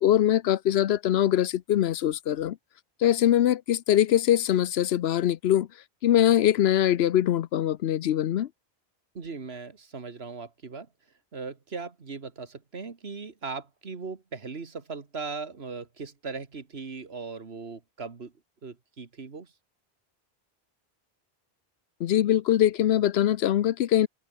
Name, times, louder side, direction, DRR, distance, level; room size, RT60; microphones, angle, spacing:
voice 1, 0.0-2.6 3.0-5.7 6.0-8.5 22.0-24.1, left 11 dB, 90° left, 0.9 m, -22 dB
voice 2, 9.1-10.9 11.3-18.3 18.6-19.5, right 4 dB, 80° right, 2.1 m, -38 dB
omnidirectional pair, 1.0 m